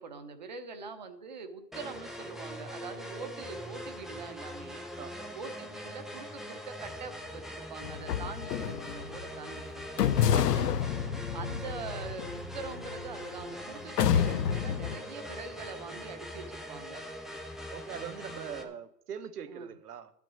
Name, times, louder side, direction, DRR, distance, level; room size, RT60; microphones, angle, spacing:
voice 1, 0.0-4.8 5.3-10.1 11.3-17.0 18.6-18.7 19.5-19.7, right 5 dB, 25° right, 8 dB, 0.8 m, -44 dB
sound 1, 1.7-18.6, equal, ahead, 0.3 m, -42 dB
voice 2, 5.0-5.3 10.3-10.9 17.7-20.1, right 8 dB, 65° right, 11 dB, 1.3 m, -42 dB
sound 2, 7.8-9.2 10.0-13.4 14.0-15.0, left 9 dB, 70° left, 0.8 m, -29 dB
11.5 x 6.0 x 8.5 m, 0.77 s
hypercardioid pair, 175°, 49 cm